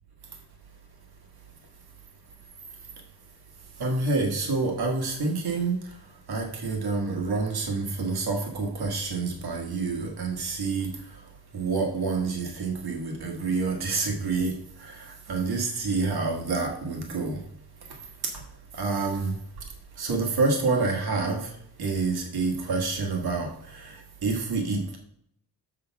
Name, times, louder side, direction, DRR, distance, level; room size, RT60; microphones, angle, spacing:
voice 1, 3.8-5.9 6.3-11.2 11.5-17.4 18.2-18.4 18.7-19.4 20.0-21.5 21.8-25.0, right 3 dB, 70° right, 2 dB, 1.5 m, -28 dB
6.9 x 6.7 x 4.5 m, 0.69 s
wide cardioid pair, 155°, 39 cm